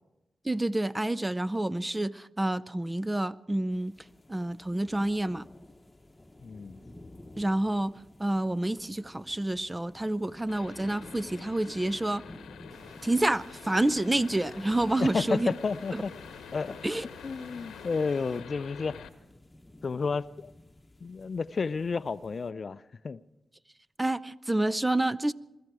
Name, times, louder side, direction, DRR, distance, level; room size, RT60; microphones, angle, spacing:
voice 1, 0.4-3.9 4.3-5.5 7.4-7.9 8.2-12.2 13.0-15.5 15.9-16.0 16.8-17.0 24.0-25.3, right 1 dB, 20° right, 0.6 m, -28 dB
sound 1, 3.7-22.5, left 1 dB, 25° left, 1.1 m, -53 dB
voice 2, 6.4-6.8 15.0-16.1 16.5-16.8 17.2-19.0 19.8-20.5 21.0-23.2, left 4 dB, 55° left, 0.5 m, -31 dB
sound 2, 10.5-19.1, left 7 dB, 85° left, 1.0 m, -47 dB
sound 3, 12.7-18.4, right 2 dB, 75° right, 2.9 m, -55 dB
22.5 x 13.0 x 4.8 m
supercardioid pair, 40°, 0 cm